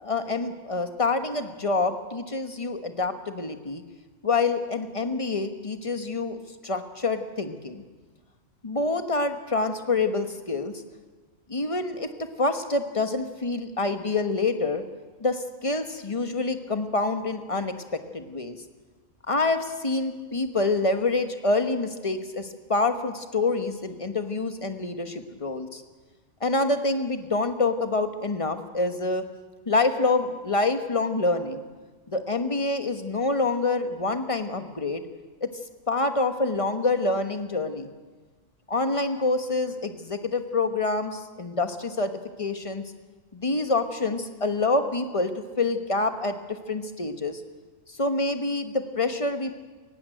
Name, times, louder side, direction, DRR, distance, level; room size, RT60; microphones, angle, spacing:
voice 1, 0.0-3.8 4.2-6.4 6.6-7.8 8.6-10.8 11.5-14.8 15.2-18.6 19.3-25.8 26.4-29.2 29.7-31.6 32.1-35.0 35.4-35.5 35.9-37.9 38.7-42.1 42.4-42.8 43.3-46.4 46.7-47.4 48.0-49.5, left 3 dB, 25° left, 8 dB, 1.2 m, -26 dB
19.0 x 16.0 x 9.0 m, 1.3 s
omnidirectional pair, 1.4 m